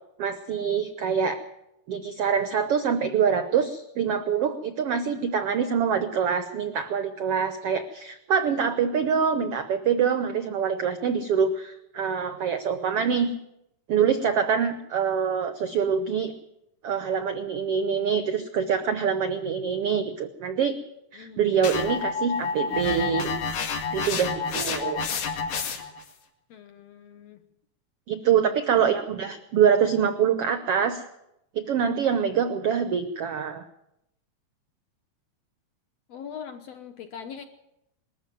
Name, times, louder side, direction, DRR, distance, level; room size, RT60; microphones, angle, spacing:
voice 1, 0.2-1.4 1.9-13.3 13.9-16.3 16.8-20.8 21.1-23.3 23.9-25.0 28.1-31.0 31.5-33.6, right 7 dB, 80° right, 10 dB, 1.3 m, -25 dB
sound 1, 21.6-26.0, left 5 dB, 85° left, 3.9 m, -29 dB
voice 2, 26.5-27.4 28.5-28.6 36.1-37.4, left 7 dB, 65° left, 7 dB, 1.7 m, -41 dB
20.5 x 13.5 x 9.2 m, 0.86 s
omnidirectional pair, 4.0 m